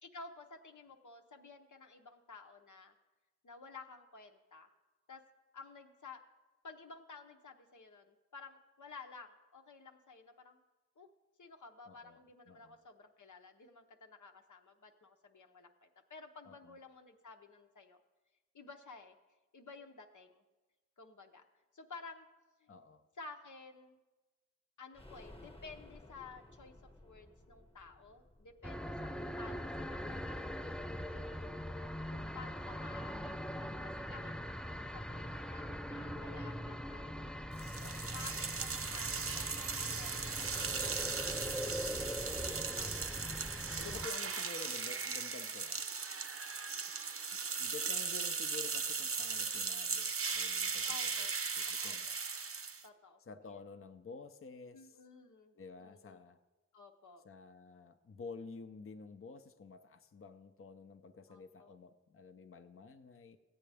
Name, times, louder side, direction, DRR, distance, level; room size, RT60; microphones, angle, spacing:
voice 1, 0.0-2.9 3.4-4.7 5.1-5.2 5.5-6.2 6.6-10.6 11.0-11.1 11.4-18.0 18.5-19.2 19.5-20.4 21.0-21.4 21.7-22.3 22.6-22.7 23.2-24.0 24.8-26.7 27.0-30.6 31.2-31.6 32.1-34.3 34.9-37.3 38.1-41.8 42.5-43.6 43.9-44.0 44.3-44.4 50.8-51.3 51.8-52.2 52.8-53.2 54.7-56.2 56.7-57.3 61.3-61.8, left 4 dB, 85° left, 4 dB, 0.8 m, -54 dB
voice 2, 11.9-12.2 12.5-12.8 16.4-16.8 22.7-23.0 30.1-30.8 37.8-38.1 42.5-43.1 43.8-45.9 47.6-51.3 51.6-52.1 53.2-55.0 55.5-56.4 57.2-63.4, left 4 dB, 45° left, 8 dB, 0.6 m, -51 dB
sound 1, 24.9-30.6 30.9-31.0 31.3-31.4, left 1 dB, 20° left, 1.0 m, -58 dB
sound 2, 28.6-44.1, equal, 5° left, 0.4 m, -42 dB
sound 3, 37.6-52.9, right 5 dB, 50° right, 0.6 m, -38 dB
15.0 x 8.5 x 3.4 m, 1.2 s
wide cardioid pair, 50°, 29 cm